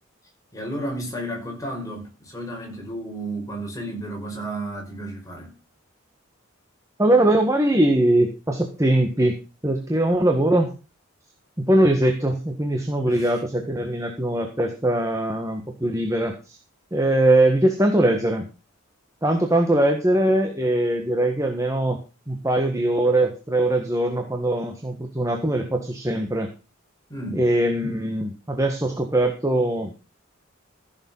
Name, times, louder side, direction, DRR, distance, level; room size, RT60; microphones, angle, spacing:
voice 1, 0.5-5.6 13.1-13.3 27.1-27.5, right 1 dB, 15° left, 5.1 m, -32 dB
voice 2, 7.0-10.7 11.7-16.6 16.9-18.5 19.2-22.0 22.3-26.5 27.3-29.9, right 1 dB, 15° right, 1.6 m, -21 dB
15.5 x 7.2 x 5.6 m
head